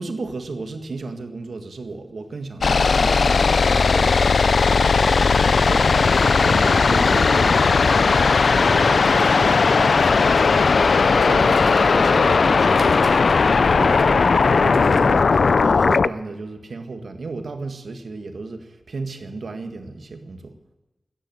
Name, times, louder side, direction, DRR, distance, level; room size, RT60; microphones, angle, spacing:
voice 1, 0.0-4.9 5.4-13.1 13.8-20.5, right 3 dB, 75° right, 6 dB, 1.7 m, -34 dB
sound 1, 2.6-16.1, left 4 dB, 75° left, 0.4 m, -17 dB
sound 2, 9.0-15.2, right 2 dB, 40° right, 3.0 m, -43 dB
14.0 x 10.0 x 9.2 m, 1.1 s
wide cardioid pair, 110°, 0 cm